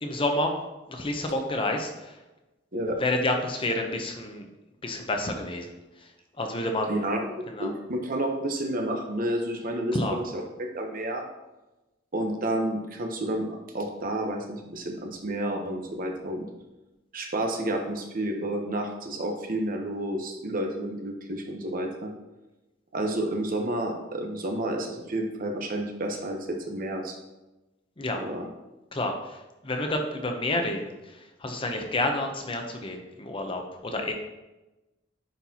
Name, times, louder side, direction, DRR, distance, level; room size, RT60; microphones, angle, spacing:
voice 1, 0.0-0.5 0.9-2.1 3.0-4.4 4.8-5.7 6.4-7.0 7.5-7.7 9.9-10.2 28.0-28.2 28.9-29.1 29.6-30.9 31.4-34.1, left 2 dB, 25° left, 4 dB, 0.7 m, -29 dB
voice 2, 6.9-7.3 7.6-11.2 12.1-16.5 17.1-22.1 22.9-27.2 28.2-28.5, right 1 dB, 45° right, 3 dB, 0.8 m, -30 dB
9.7 x 4.3 x 2.8 m, 1.0 s
head